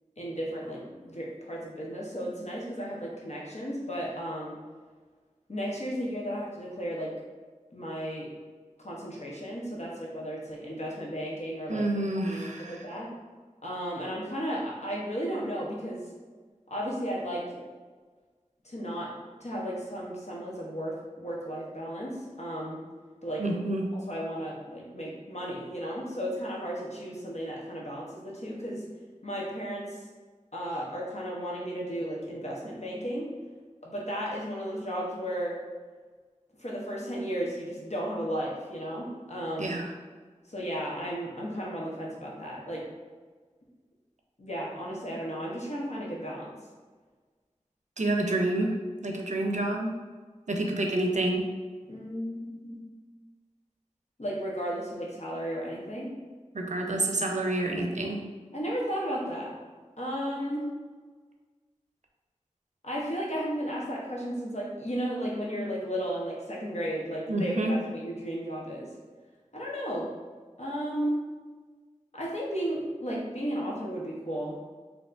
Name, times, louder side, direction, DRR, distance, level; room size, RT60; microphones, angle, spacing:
voice 1, 0.2-4.6 5.5-7.1 7.7-8.3 8.8-11.8 12.2-13.1 13.6-16.0 16.7-17.4 18.6-19.1 19.4-22.8 23.2-23.4 23.9-28.8 29.2-30.0 30.5-33.3 33.8-35.6 36.6-39.8 40.5-42.8 44.4-46.5 51.9-52.8 54.2-56.1 58.5-59.5 60.0-60.7 62.8-68.9 69.5-70.1 70.6-71.1 72.1-74.6, equal, 60° left, -4 dB, 0.9 m, -34 dB
voice 2, 11.7-12.9 23.4-23.9 39.6-39.9 48.0-48.7 49.0-49.9 50.5-51.5 56.5-58.2 67.3-67.8, right 2 dB, 70° right, 2 dB, 0.5 m, -28 dB
4.4 x 2.8 x 2.6 m, 1.4 s
wide cardioid pair, 45°, 13 cm